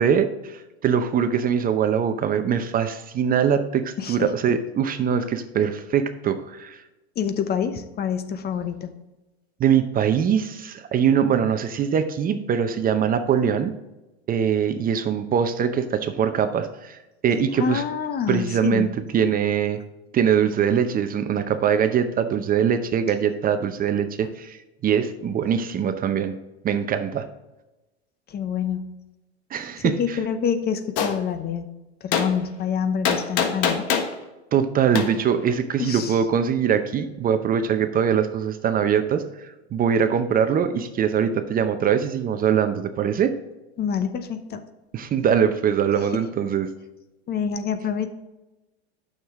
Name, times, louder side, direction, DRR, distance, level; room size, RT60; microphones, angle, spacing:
voice 1, 0.0-6.8 9.6-13.7 14.3-17.8 18.3-18.9 19.1-19.8 20.1-26.4 26.6-27.3 29.5-30.2 34.5-43.3 44.9-46.7, right 8 dB, 25° right, 9 dB, 0.7 m, -22 dB
voice 2, 7.2-8.9 17.6-18.9 28.3-28.9 29.8-31.7 32.0-33.9 35.8-36.2 43.8-44.6 45.9-46.1 47.3-48.1, left 7 dB, 30° left, 10 dB, 0.8 m, -27 dB
Gunshot gunfire, 31.0-31.1 32.1-32.3 33.0-34.1 35.0-35.1, left 7 dB, 55° left, 1.4 m, -22 dB
9.0 x 6.7 x 3.6 m, 1.0 s
hypercardioid pair, 100°, 32 cm